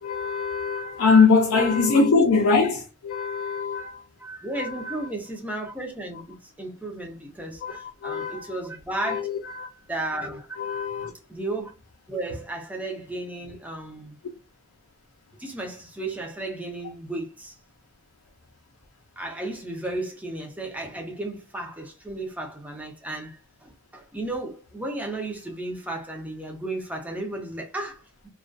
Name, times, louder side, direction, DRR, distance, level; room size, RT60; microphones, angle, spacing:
voice 1, 0.0-4.0 4.5-5.0 7.6-8.5 9.1-9.7 10.6-11.1, left 4 dB, 70° left, 0.4 m, -22 dB
voice 2, 4.2-9.3 9.7-10.6 10.9-11.0 11.3-11.7 12.1-14.2 15.4-17.5 19.2-28.3, right 2 dB, 5° right, 0.5 m, -34 dB
2.3 x 2.3 x 2.3 m
head